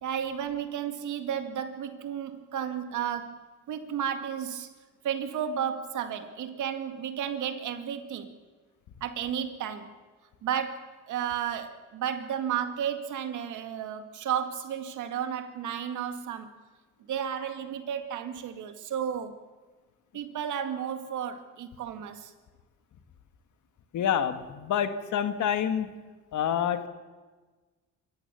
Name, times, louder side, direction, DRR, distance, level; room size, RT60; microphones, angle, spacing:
voice 1, 0.0-4.7 5.0-8.3 9.0-10.0 10.4-16.5 17.1-19.4 20.1-22.3, right 8 dB, 80° right, 8 dB, 2.1 m, -33 dB
voice 2, 23.9-25.9 26.3-26.9, left 9 dB, 75° left, 9 dB, 1.8 m, -27 dB
26.0 x 14.5 x 7.0 m, 1.3 s
cardioid pair, 90°, 30 cm